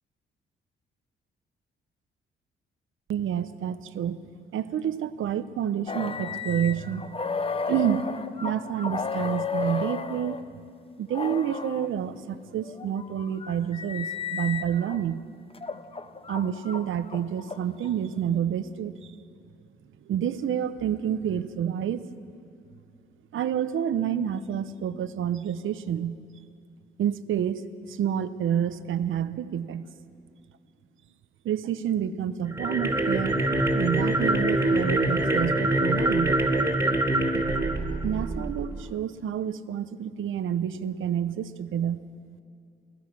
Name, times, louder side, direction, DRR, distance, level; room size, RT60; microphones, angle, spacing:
voice 1, 3.1-4.2 4.5-7.1 7.7-8.1 8.4-10.4 11.0-15.2 16.3-19.1 20.1-22.1 23.3-26.2 27.0-29.9 31.4-33.4 33.7-36.4 37.3-37.5 38.0-42.0, right 9 dB, 70° right, 12 dB, 0.9 m, -29 dB
sound 1, 5.9-10.4 11.1-11.9 12.6-15.0 15.5-17.9, left 5 dB, 25° left, 0.9 m, -33 dB
sound 2, 32.5-38.7, right 1 dB, 10° right, 2.8 m, -24 dB
28.5 x 16.0 x 6.2 m, 2.3 s
cardioid pair, 70°, 21 cm